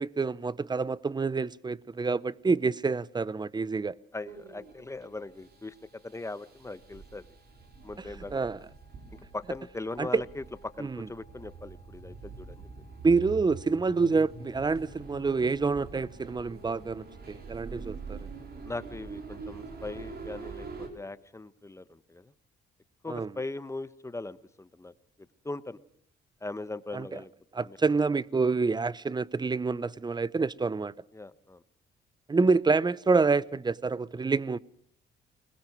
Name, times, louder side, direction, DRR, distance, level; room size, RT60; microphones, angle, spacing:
voice 1, 0.0-4.0 8.3-8.6 10.0-10.2 10.8-11.1 13.0-18.2 23.1-23.3 26.9-27.0 27.5-30.9 32.3-34.6, right 4 dB, 20° right, 0.7 m, -27 dB
voice 2, 4.1-7.3 7.8-8.6 9.1-12.7 17.6-17.9 18.6-22.3 23.0-24.9 25.2-25.8 26.4-27.3 27.6-27.8 31.1-31.6, left 2 dB, 15° left, 1.1 m, -40 dB
sound 1, 4.3-20.9, right 4 dB, 55° right, 4.7 m, -45 dB
21.0 x 21.0 x 6.0 m
cardioid pair, 90°, 20 cm